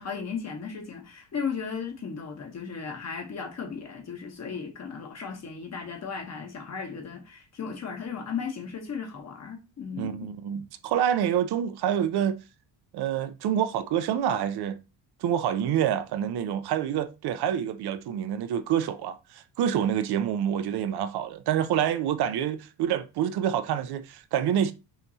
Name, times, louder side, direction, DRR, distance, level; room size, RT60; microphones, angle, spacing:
voice 1, 0.0-10.3, left 6 dB, 40° left, 1.1 m, -36 dB
voice 2, 10.0-12.4 12.9-14.8 15.2-24.7, right 9 dB, 65° right, 0.6 m, -27 dB
5.7 x 3.0 x 2.7 m
cardioid pair, 135°, 42 cm